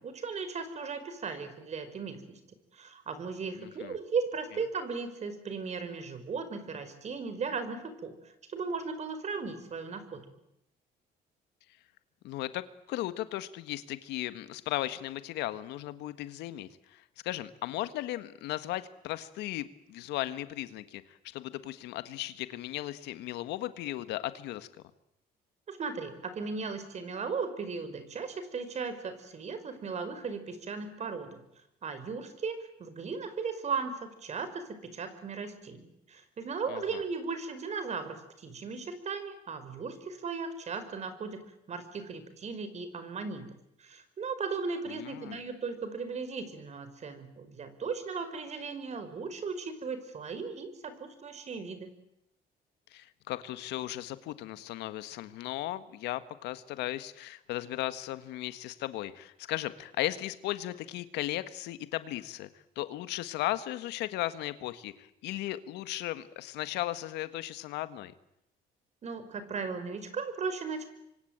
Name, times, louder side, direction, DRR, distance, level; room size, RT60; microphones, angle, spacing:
voice 1, 0.0-2.4 2.7-10.2 25.7-31.4 31.8-41.4 41.7-43.5 43.8-51.9 69.0-70.9, right 5 dB, 40° right, 10 dB, 5.1 m, -37 dB
voice 2, 3.6-3.9 12.2-24.7 36.7-37.0 44.9-45.4 52.9-62.5 62.7-68.1, left 15 dB, 85° left, 12 dB, 1.7 m, -36 dB
26.5 x 24.5 x 8.9 m, 0.81 s
cardioid pair, 110°, 17 cm